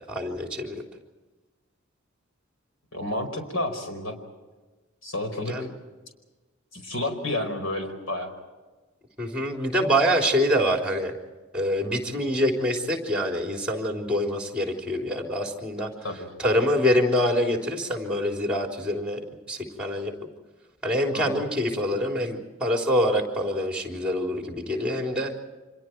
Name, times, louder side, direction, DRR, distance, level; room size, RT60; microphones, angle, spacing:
voice 1, 0.1-0.8 5.5-5.7 9.2-11.1 11.5-15.9 16.4-19.2 19.5-20.1 20.8-25.3, equal, 5° right, 2 dB, 3.8 m, -25 dB
voice 2, 2.9-4.1 5.0-5.7 6.7-8.3 16.0-16.3 21.1-21.4, left 1 dB, 85° left, 5 dB, 4.9 m, -30 dB
29.5 x 26.0 x 4.7 m, 1.2 s
head